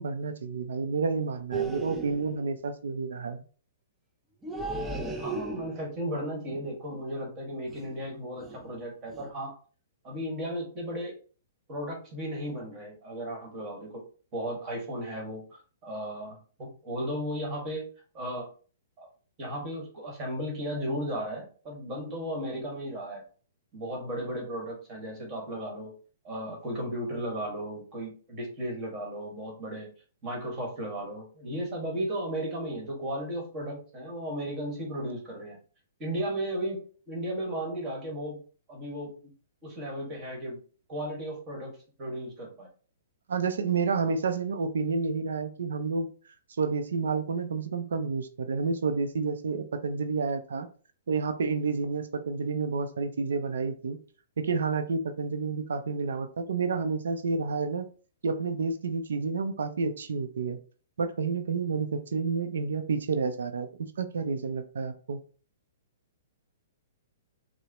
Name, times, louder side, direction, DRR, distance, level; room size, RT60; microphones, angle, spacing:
voice 1, 0.0-3.4 43.3-46.1 46.6-50.7 51.1-54.0 54.4-57.9 58.2-60.6 61.0-65.2, right 4 dB, 80° right, 8 dB, 0.5 m, -30 dB
FP Monster, 1.5-2.4 4.4-6.0 7.7-8.0 8.4-8.7 9.1-9.3, right 3 dB, 10° right, 0.5 m, -35 dB
voice 2, 5.2-9.5 10.0-11.2 11.7-14.0 14.3-17.8 18.1-18.5 19.0-19.1 19.4-23.2 23.7-25.9 26.2-29.9 30.2-35.6 36.0-38.4 38.7-39.2 39.6-40.6 40.9-42.7, equal, 30° right, -1 dB, 1.5 m, -35 dB
4.6 x 2.0 x 2.9 m, 0.39 s
hypercardioid pair, 135°, 0 cm